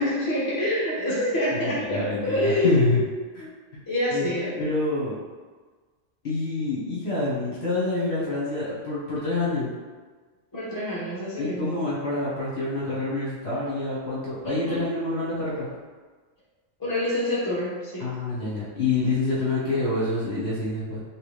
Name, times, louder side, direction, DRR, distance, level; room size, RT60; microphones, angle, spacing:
voice 1, 0.0-3.5 3.9-4.6 10.5-11.9 14.4-14.8 16.8-18.1, left 1 dB, 20° left, -8 dB, 1.0 m, -27 dB
voice 2, 1.5-3.0 3.3-3.4 4.1-5.1 6.2-9.7 11.4-15.7 18.0-21.0, left 2 dB, 55° left, -8 dB, 1.3 m, -27 dB
3.4 x 2.9 x 3.2 m, 1.4 s
omnidirectional pair, 1.3 m